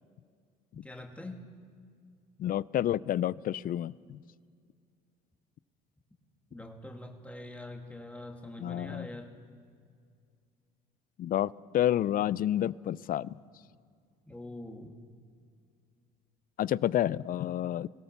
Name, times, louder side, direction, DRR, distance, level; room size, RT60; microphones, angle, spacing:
voice 1, 0.7-1.4 6.5-9.4 14.3-15.0, left 1 dB, 5° left, 3 dB, 2.5 m, -44 dB
voice 2, 2.4-4.2 8.6-9.1 11.2-13.3 16.6-17.9, left 11 dB, 45° left, 21 dB, 0.5 m, -29 dB
22.5 x 17.0 x 6.8 m, 2.2 s
supercardioid pair, 80°, 20 cm